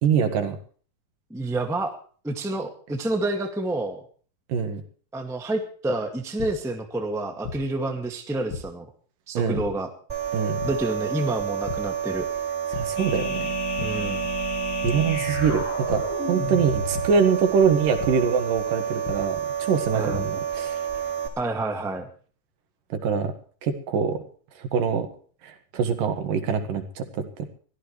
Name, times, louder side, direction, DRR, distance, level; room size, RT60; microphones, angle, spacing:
voice 1, 0.0-0.6 4.5-4.8 9.3-9.6 10.3-10.6 12.7-13.5 14.8-16.0 16.3-21.0 23.0-23.3 23.6-24.2 24.6-25.1 25.4-27.5, right 6 dB, 75° right, 7 dB, 3.4 m, -24 dB
voice 2, 1.3-1.9 2.2-4.0 5.1-8.9 9.3-9.9 10.6-12.3 13.8-14.2 19.9-20.3 21.4-22.1, right 2 dB, ahead, 3 dB, 1.2 m, -28 dB
sound 1, 6.4-6.5 7.4-7.6 8.5-8.6 9.5-9.6 10.6-10.7 11.7-11.8 12.2-12.4 12.7-12.8 13.8-13.9 14.8-14.9 15.9-16.0 16.9-17.0 18.0-18.1 19.1-19.2 19.8-20.2, left 6 dB, 75° left, 3.5 m, -33 dB
sound 2, 10.1-21.3, right 8 dB, 20° right, 2.8 m, -29 dB
sound 3, 13.0-17.6, left 3 dB, 40° left, 5.7 m, -32 dB
23.0 x 15.0 x 3.3 m, 0.43 s
omnidirectional pair, 4.0 m